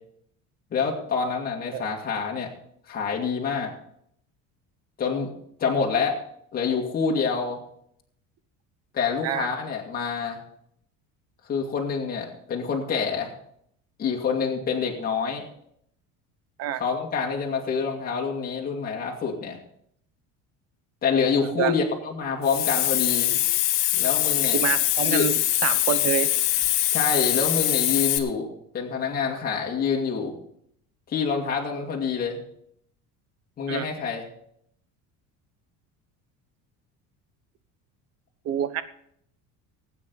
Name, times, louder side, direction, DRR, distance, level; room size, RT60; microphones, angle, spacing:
voice 1, 0.7-2.5 2.9-3.7 5.0-5.3 5.6-6.2 6.5-7.6 8.9-10.4 11.5-13.3 14.0-15.5 16.8-19.6 21.0-23.4 23.9-24.6 25.1-25.2 26.9-30.3 31.1-32.4 33.6-34.3, left 5 dB, 25° left, -1 dB, 2.1 m, -27 dB
voice 2, 21.3-21.7 24.5-26.3 33.7-33.9 38.4-38.8, right 10 dB, 45° right, 13 dB, 0.9 m, -27 dB
Hiss, 22.4-28.2, left 14 dB, 70° left, 1.4 m, -23 dB
18.5 x 8.7 x 4.0 m, 0.69 s
cardioid pair, 175°, 33 cm